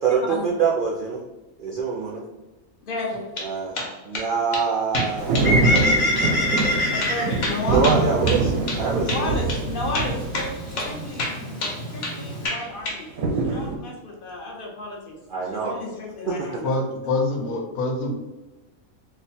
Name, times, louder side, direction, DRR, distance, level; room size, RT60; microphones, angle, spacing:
voice 1, 0.0-1.2 1.6-2.2 3.4-3.7 4.0-5.4 7.7-9.3 15.3-15.7 16.3-16.4, right 5 dB, 65° right, -3 dB, 0.5 m, -24 dB
voice 2, 2.9-3.3 6.6-7.8 9.0-10.5 10.8-11.3 11.9-13.1 13.3-15.1 15.5-16.7, left 2 dB, 45° left, -1 dB, 0.9 m, -32 dB
sound 1, 3.1-3.5 3.7-4.3 4.5-4.6 4.9-5.5 5.7-5.9 6.2-6.3 6.6-6.7 7.0-8.8 9.1-9.2 9.5-9.6 9.9-10.5 10.8-10.9 11.2-12.2 12.4-13.0, left 2 dB, 65° left, 1.2 m, -28 dB
sound 2, 5.0-11.0 13.2-13.8, right 3 dB, 85° right, 1.0 m, -24 dB
Bird, 5.2-12.5, left 1 dB, 30° left, 1.2 m, -27 dB
voice 3, 16.6-18.1, left 2 dB, 90° left, 1 dB, 1.2 m, -25 dB
3.1 x 2.1 x 4.1 m, 1.1 s
omnidirectional pair, 1.4 m